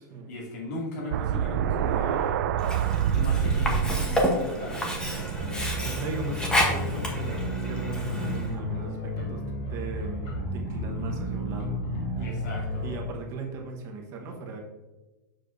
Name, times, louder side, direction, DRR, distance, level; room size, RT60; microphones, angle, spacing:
voice 1, 0.3-2.6 3.1-5.7 12.2-12.9, left 1 dB, 55° left, -2 dB, 2.3 m, -38 dB
sound 1, 1.1-6.1, right 8 dB, 60° right, 0.4 m, -27 dB
Sink (filling or washing), 2.6-8.5, equal, 5° left, 0.9 m, -30 dB
sound 2, 5.4-13.0, equal, 35° left, 2.0 m, -32 dB
voice 2, 5.7-9.4 9.7-11.7 12.2-12.3 12.8-14.6, right 3 dB, 25° right, 1 dB, 1.1 m, -38 dB
7.4 x 6.5 x 2.6 m, 1.2 s
supercardioid pair, 165°, 11 cm